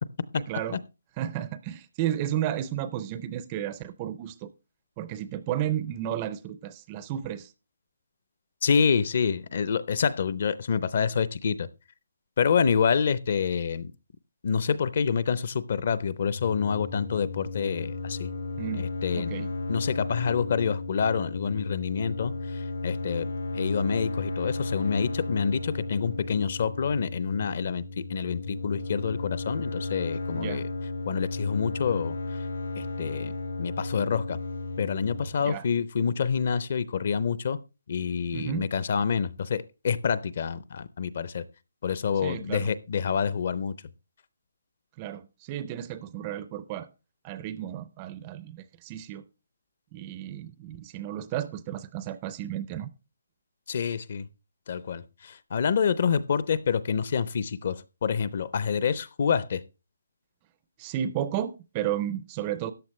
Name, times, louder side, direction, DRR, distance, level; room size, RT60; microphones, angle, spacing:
voice 1, 0.4-0.8 1.2-4.5 5.0-7.5 18.6-19.5 30.3-30.7 35.4-35.6 38.3-38.7 42.2-42.7 45.0-46.9 47.2-49.3 49.9-52.9 60.8-62.7, right 11 dB, 15° right, 0.4 m, -33 dB
voice 2, 8.6-11.7 12.4-13.9 14.4-18.3 18.8-19.3 19.7-30.6 31.1-32.2 32.8-33.3 33.6-34.4 34.8-37.6 37.9-41.4 41.8-43.7 53.7-54.3 54.7-59.6, left 6 dB, 35° left, 0.5 m, -27 dB
sound 1, 16.3-35.3, left 2 dB, 85° left, 5.0 m, -34 dB
13.5 x 9.3 x 3.1 m
hypercardioid pair, 180°, 0 cm